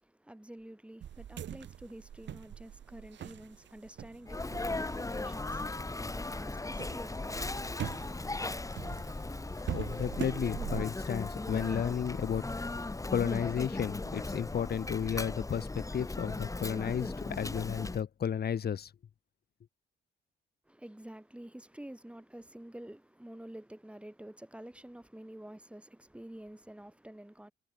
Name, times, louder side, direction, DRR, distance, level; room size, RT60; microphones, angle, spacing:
voice 1, 0.0-8.4 20.7-27.5, right 1 dB, 5° right, 4.9 m, -49 dB
sound 1, 1.0-6.1 6.5-10.8, right 10 dB, 65° right, 6.8 m, -43 dB
Sneeze, 4.3-18.0, left 2 dB, 15° left, 3.0 m, -37 dB
voice 2, 9.7-12.5 13.1-18.9, left 8 dB, 55° left, 2.9 m, -33 dB
cardioid pair, 90°, 20 cm